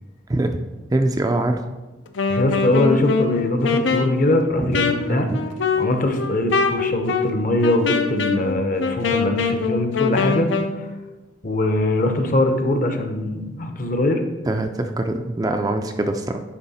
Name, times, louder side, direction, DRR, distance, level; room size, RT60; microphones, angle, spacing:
voice 1, 0.3-0.6 0.9-1.6 4.6-4.8 5.1-5.4 14.4-16.4, right 2 dB, 20° right, 6 dB, 0.3 m, -23 dB
Wind instrument woodwind instrument, 2.1-10.8, left 4 dB, 85° left, 0.6 m, -23 dB
voice 2, 2.3-5.3 5.8-10.5 11.4-14.2, left 1 dB, 45° left, 5 dB, 0.7 m, -22 dB
9.6 x 3.4 x 4.2 m, 1.1 s
head